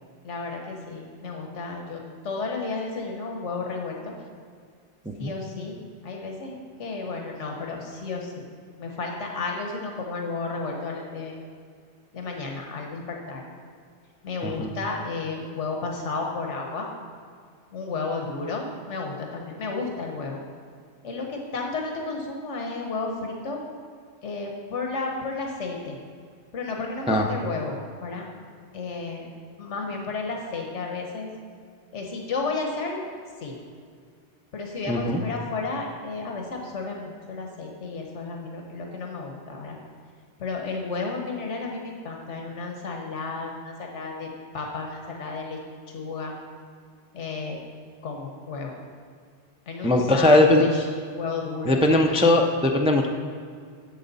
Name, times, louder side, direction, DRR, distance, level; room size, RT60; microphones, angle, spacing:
voice 1, 0.2-4.1 5.2-8.4 8.8-11.4 12.1-13.4 14.2-16.9 17.7-20.4 21.0-23.6 24.2-26.0 26.5-28.3 28.7-29.3 29.6-31.3 31.9-33.0 33.4-33.6 34.5-39.8 40.4-44.3 44.5-45.6 45.9-46.3 47.1-47.6 48.0-48.7 49.7-50.9 51.2-51.8 52.1-52.2, left 3 dB, 85° left, 1 dB, 1.4 m, -32 dB
voice 2, 34.8-35.2 49.8-50.6 51.7-53.1, left 1 dB, 10° right, 2 dB, 0.4 m, -19 dB
11.0 x 7.4 x 4.1 m, 2.1 s
omnidirectional pair, 1.2 m